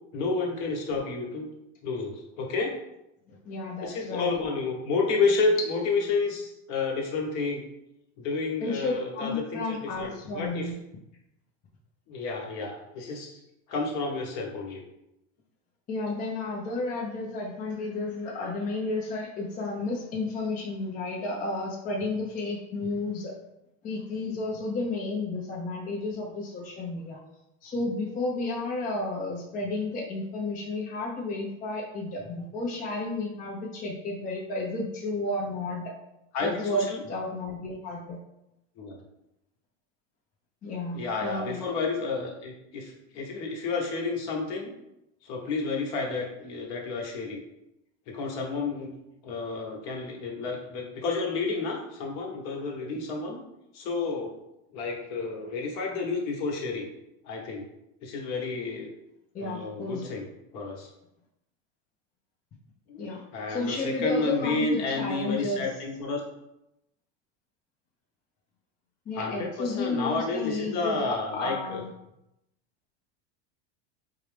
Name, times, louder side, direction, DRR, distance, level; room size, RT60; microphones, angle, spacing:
voice 1, 0.1-1.5 1.8-2.7 3.8-7.6 8.2-10.7 12.1-13.4 13.7-14.8 36.3-37.0 38.8-39.0 40.9-44.7 45.2-47.4 48.1-48.9 49.2-53.4 53.7-54.3 54.7-56.9 57.2-57.6 58.0-58.9 59.4-60.2 60.5-60.9 62.9-66.2 69.2-71.8, left 3 dB, 55° left, -1 dB, 1.1 m, -30 dB
voice 2, 3.3-4.3 8.6-10.8 15.9-23.3 23.8-27.2 27.6-35.9 36.4-38.2 40.6-41.6 59.3-60.1 63.0-63.2 63.5-65.6 69.1-71.9, left 2 dB, 25° left, -2 dB, 0.5 m, -32 dB
4.5 x 2.0 x 3.3 m, 0.87 s
supercardioid pair, 115°, 34 cm